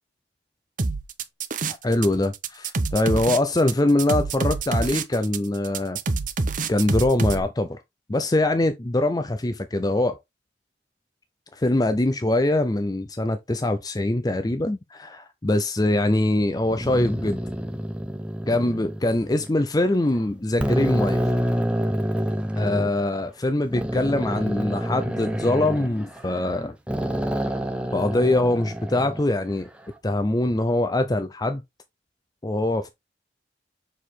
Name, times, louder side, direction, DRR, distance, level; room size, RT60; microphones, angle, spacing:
sound 1, 0.8-2.1 2.3-7.4, right 3 dB, 45° right, 0.8 m, -26 dB
voice 1, 1.7-6.0 6.7-7.8 8.1-10.2 11.5-17.4 18.5-21.2 22.6-26.8 27.9-29.7 30.0-31.6 32.4-32.9, left 1 dB, 20° left, 0.5 m, -23 dB
sound 2, 16.6-19.5 20.1-20.2 20.6-22.9 23.7-26.6 26.9-29.2, equal, 5° right, 0.9 m, -27 dB
6.4 x 4.9 x 3.6 m
head